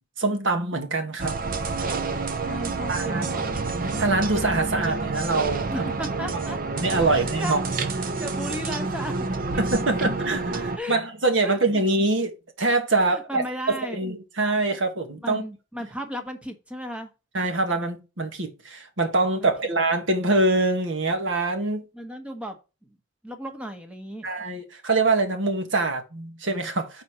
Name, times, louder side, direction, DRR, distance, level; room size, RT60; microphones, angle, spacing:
voice 1, 0.2-1.3 2.9-3.3 4.0-5.9 6.3-6.4 6.8-7.9 9.6-15.4 17.3-21.8 24.2-27.0, right 2 dB, 65° right, 1.5 m, -24 dB
sound 1, 1.2-10.8, right 3 dB, 45° right, 0.7 m, -28 dB
voice 2, 2.4-3.5 5.7-7.6 7.9-9.3 9.5-9.9 10.8-11.0 11.4-11.8 13.1-14.0 15.2-17.1 19.4-19.5 21.9-22.6 22.8-22.9 23.2-24.3, equal, 5° right, 1.2 m, -35 dB
6.2 x 4.3 x 5.6 m
head